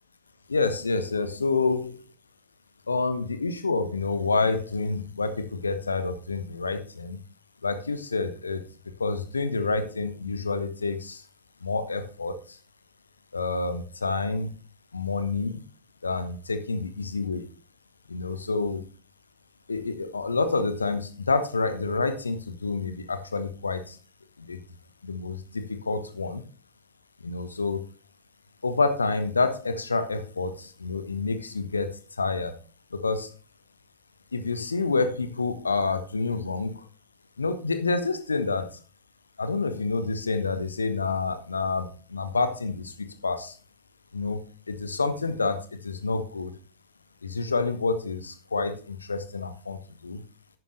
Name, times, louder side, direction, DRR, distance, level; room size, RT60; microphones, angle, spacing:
voice 1, 0.5-2.0 2.9-7.2 7.6-8.6 9.0-11.2 11.6-12.6 13.3-14.5 14.9-15.6 16.0-17.5 18.1-18.8 19.7-24.0 24.4-24.6 25.0-26.4 27.2-27.8 28.6-31.9 32.2-32.5 32.9-33.3 34.3-36.8 37.4-38.7 39.4-43.5 44.1-44.4 44.7-46.5 47.2-50.2, left 3 dB, 75° left, 9 dB, 1.3 m, -28 dB
11.0 x 9.3 x 3.3 m, 0.38 s
figure-of-eight pair, 90°, 0 cm